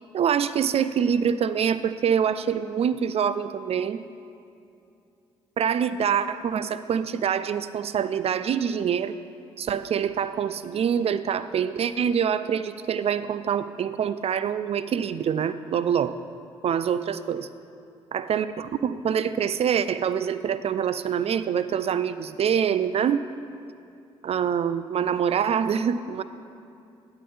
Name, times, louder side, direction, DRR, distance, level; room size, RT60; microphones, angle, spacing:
voice 1, 0.1-4.0 5.6-9.1 9.6-16.2 16.6-17.5 18.1-23.2 24.2-26.2, right 8 dB, 45° right, 13 dB, 0.4 m, -25 dB
10.5 x 3.9 x 7.0 m, 2.6 s
hypercardioid pair, 45°, 15 cm